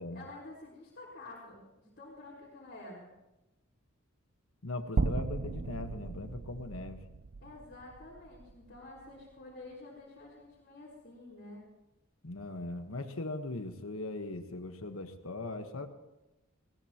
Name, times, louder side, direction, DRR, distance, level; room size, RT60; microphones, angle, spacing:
voice 1, 0.0-3.1 7.4-11.7, left 2 dB, 50° left, -6 dB, 4.2 m, -49 dB
voice 2, 4.6-7.0 12.2-15.9, left 2 dB, 75° left, 7 dB, 1.4 m, -39 dB
sound 1, 5.0-9.2, right 3 dB, 50° right, 0.5 m, -36 dB
20.0 x 18.0 x 3.0 m, 0.97 s
head